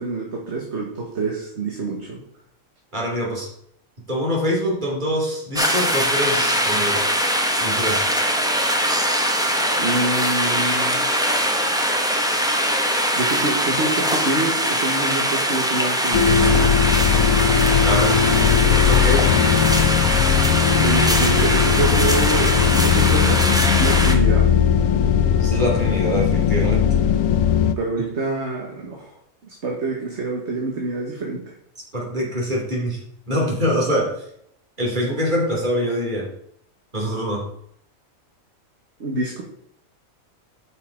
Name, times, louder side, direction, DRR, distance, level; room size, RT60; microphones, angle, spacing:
voice 1, 0.0-2.2 9.7-11.1 13.1-16.8 20.7-24.5 27.8-29.1 29.4-31.5 39.0-39.4, right 3 dB, 55° right, 0 dB, 1.6 m, -27 dB
voice 2, 2.9-3.5 4.1-7.0 7.6-8.0 17.8-18.2 18.9-19.3 25.4-26.9 31.9-33.0 33.3-34.1 34.8-36.3 36.9-37.5, equal, 35° right, -3 dB, 2.9 m, -24 dB
sound 1, 5.6-24.2, equal, 5° right, 0.8 m, -22 dB
sound 2, 16.1-27.7, left 8 dB, 75° left, 1.0 m, -18 dB
8.4 x 5.7 x 5.1 m, 0.70 s
omnidirectional pair, 1.4 m